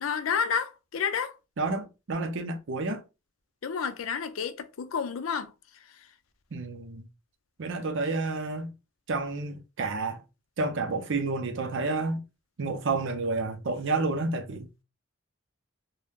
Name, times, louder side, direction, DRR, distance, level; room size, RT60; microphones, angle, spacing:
voice 1, 0.0-1.3 3.6-5.5, left 6 dB, 85° left, 0.5 m, -30 dB
voice 2, 1.6-3.0 6.5-7.1 7.6-8.7 9.1-10.2 10.6-12.2 12.6-14.7, right 3 dB, 65° right, 0.6 m, -30 dB
2.6 x 2.1 x 3.5 m
head